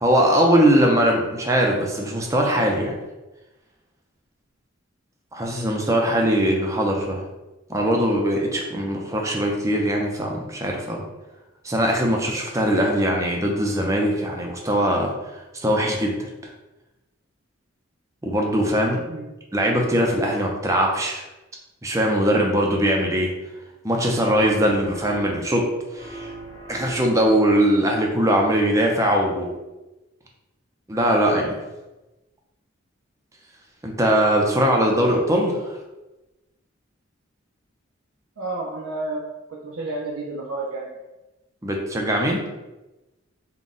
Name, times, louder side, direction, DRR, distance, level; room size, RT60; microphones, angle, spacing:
voice 1, 0.0-3.0 5.3-7.2 7.7-11.0 11.6-15.1 15.5-16.3 18.2-19.0 19.5-21.2 21.8-23.3 23.8-25.6 25.9-26.3 26.7-29.5 30.9-31.6 33.8-35.8 41.6-42.4, equal, 15° right, 0 dB, 0.5 m, -21 dB
sound 1, 24.2-25.6 25.9-27.5, right 3 dB, 15° left, 1.1 m, -39 dB
voice 2, 38.4-39.2 39.5-40.9, right 2 dB, 75° right, -3 dB, 0.5 m, -31 dB
3.9 x 2.2 x 3.7 m, 1.1 s
head